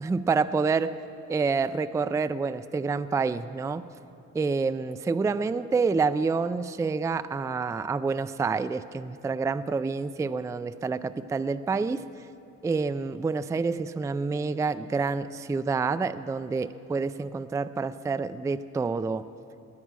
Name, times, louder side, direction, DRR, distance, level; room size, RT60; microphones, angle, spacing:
voice 1, 0.0-0.9 1.3-3.8 4.3-12.0 12.6-19.2, right 4 dB, 10° right, 12 dB, 0.3 m, -28 dB
18.0 x 9.8 x 6.2 m, 2.6 s
cardioid pair, 90°, 30 cm